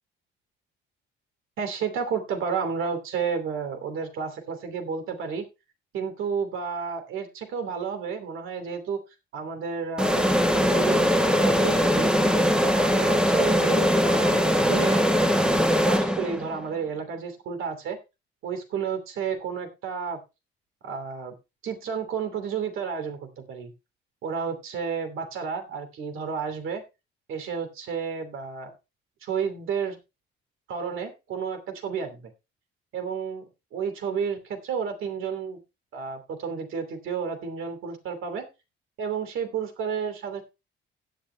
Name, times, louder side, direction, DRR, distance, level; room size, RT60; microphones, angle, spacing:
voice 1, 1.6-5.4 5.9-9.0 9.3-10.4 10.7-12.1 12.6-15.1 15.4-18.0 18.4-20.2 20.8-21.3 21.6-23.7 24.2-26.8 27.3-28.7 29.2-30.0 30.7-32.3 32.9-35.6 35.9-38.4 39.0-40.4, right 6 dB, 75° right, 7 dB, 2.8 m, -31 dB
sound 1, 10.0-16.6, equal, 5° right, 1.4 m, -21 dB
17.0 x 10.5 x 2.2 m, 0.26 s
cardioid pair, 125°, 21 cm